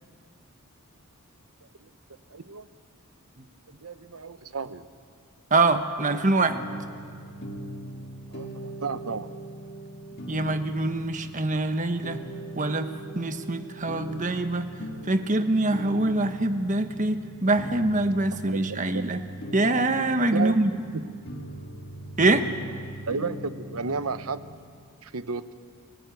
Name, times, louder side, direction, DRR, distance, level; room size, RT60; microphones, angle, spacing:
voice 1, 2.3-2.7 3.8-4.9 8.3-9.3 18.5-19.1 20.3-20.6 20.9-21.2 23.1-24.4 25.0-25.5, right 4 dB, 75° right, 12 dB, 0.9 m, -33 dB
voice 2, 5.5-6.6 10.3-12.2 12.6-12.9 13.1-14.6 15.1-19.2 19.5-20.7 22.2-22.5, right 2 dB, 35° right, 8 dB, 1.3 m, -24 dB
sound 1, 6.0-24.6, right 1 dB, 50° left, 1.7 m, -40 dB
27.5 x 17.0 x 9.3 m, 2.1 s
head